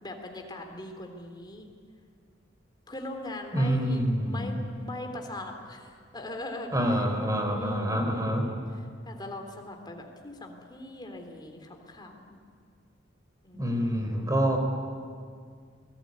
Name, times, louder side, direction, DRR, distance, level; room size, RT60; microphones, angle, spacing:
voice 1, 0.0-1.7 2.9-7.1 7.5-8.6 9.0-12.4 13.4-14.3, left 1 dB, 25° left, 3 dB, 3.3 m, -41 dB
voice 2, 3.5-4.5 6.7-8.5 13.5-14.6, equal, 20° right, 4 dB, 4.2 m, -26 dB
28.5 x 20.0 x 9.6 m, 2.1 s
head